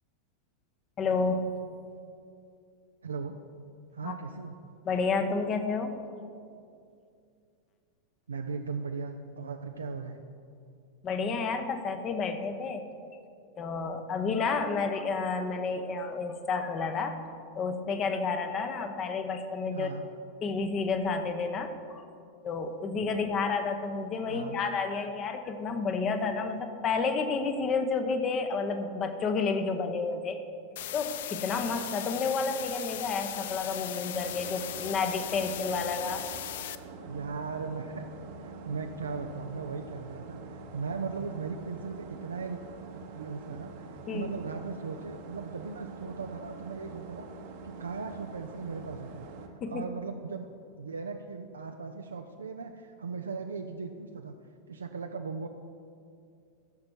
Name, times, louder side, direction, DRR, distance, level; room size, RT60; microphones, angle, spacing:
voice 1, 1.0-1.6 4.0-4.1 4.9-6.0 11.0-12.8 13.6-17.2 17.6-19.9 20.4-22.0 22.4-30.4 30.9-36.2 36.6-36.8 44.1-44.3 49.6-49.8, left 4 dB, 30° left, 7 dB, 0.9 m, -30 dB
voice 2, 3.0-3.3 3.9-4.6 8.3-10.2 19.7-20.1 24.2-24.6 37.0-38.1 38.4-42.6 42.9-47.3 47.6-49.3 49.7-50.5 50.8-54.3 54.7-55.5, right 5 dB, 70° right, 5 dB, 0.5 m, -38 dB
sound 1, 30.8-36.8, left 12 dB, 55° left, 0.4 m, -38 dB
sound 2, 34.1-49.5, right 4 dB, 50° right, 1.0 m, -45 dB
15.0 x 6.3 x 4.6 m, 2.4 s
figure-of-eight pair, 90°, 0 cm